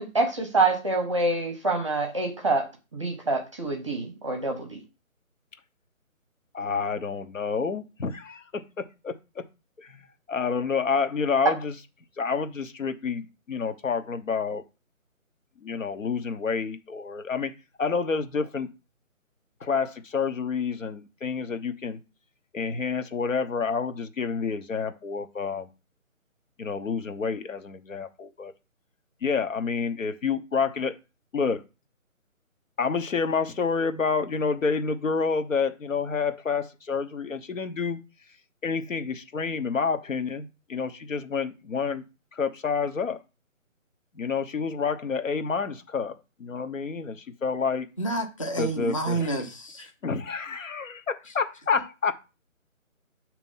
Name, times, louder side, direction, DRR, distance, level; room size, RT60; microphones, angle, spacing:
voice 1, 0.0-4.8, right 3 dB, 20° right, 0.8 m, -26 dB
voice 2, 6.5-9.4 9.8-11.7 12.2-14.6 15.6-17.5 17.8-18.7 19.6-22.0 22.5-25.7 26.6-28.5 29.2-31.0 31.3-31.6 32.8-38.0 38.6-42.0 42.3-43.2 44.1-47.9 48.6-49.3 50.0-52.1, left 5 dB, 70° left, 1.1 m, -29 dB
voice 3, 48.0-49.9, right 2 dB, 25° left, 0.7 m, -29 dB
6.7 x 3.0 x 5.5 m
figure-of-eight pair, 160°, 41 cm